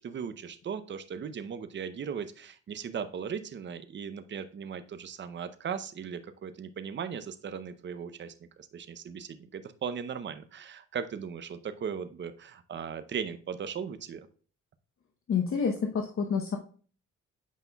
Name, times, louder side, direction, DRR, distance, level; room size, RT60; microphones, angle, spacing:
voice 1, 0.0-14.3, right 7 dB, 40° right, 11 dB, 0.6 m, -38 dB
voice 2, 15.3-16.6, left 6 dB, 45° left, 4 dB, 0.8 m, -28 dB
8.3 x 5.3 x 2.3 m, 0.42 s
cardioid pair, 90°, 30 cm